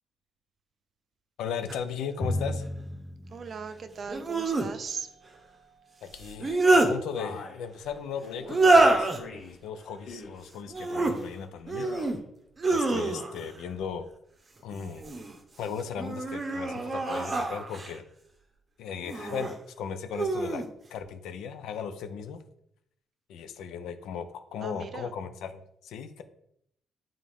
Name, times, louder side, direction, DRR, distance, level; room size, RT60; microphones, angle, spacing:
voice 1, 1.4-2.7 6.0-11.9 12.7-14.1 14.6-15.1 15.6-18.0 18.8-20.6 20.9-22.4 23.3-26.2, left 7 dB, 85° left, 9 dB, 0.6 m, -37 dB
sound 1, 1.7-1.8 4.1-4.7 6.2-6.9 8.5-9.2 10.7-11.2 11.7-12.2 12.6-13.5 14.7-15.3 15.9-18.0 19.0-19.5 20.1-20.7, right 2 dB, 30° right, 0.9 m, -25 dB
Drum, 2.2-4.6, left 1 dB, 10° left, 0.6 m, -35 dB
voice 2, 3.3-6.0 24.6-25.1, right 6 dB, 50° right, 10 dB, 0.6 m, -40 dB
Male speech man speaking, 7.2-7.6 8.2-8.6 9.2-9.6 10.0-10.4 10.8-11.3 11.7-12.1, left 4 dB, 60° left, 1.1 m, -42 dB
7.5 x 3.5 x 3.5 m, 0.73 s
cardioid pair, 90°, 0 cm